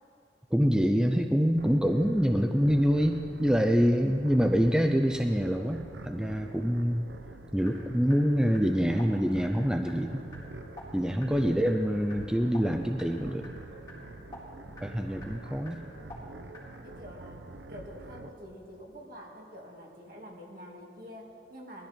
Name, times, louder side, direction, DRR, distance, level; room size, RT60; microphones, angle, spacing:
voice 1, 0.5-7.0 7.5-10.2 10.9-13.5 14.8-15.8, equal, 5° right, 4 dB, 0.4 m, -26 dB
sound 1, 1.6-18.3, right 2 dB, 80° right, 0.8 m, -46 dB
sound 2, 7.6-16.6, left 1 dB, 20° left, 4.3 m, -50 dB
voice 2, 14.6-15.3 16.8-21.9, equal, 55° right, -1 dB, 2.4 m, -47 dB
20.5 x 13.5 x 4.4 m, 2.6 s
head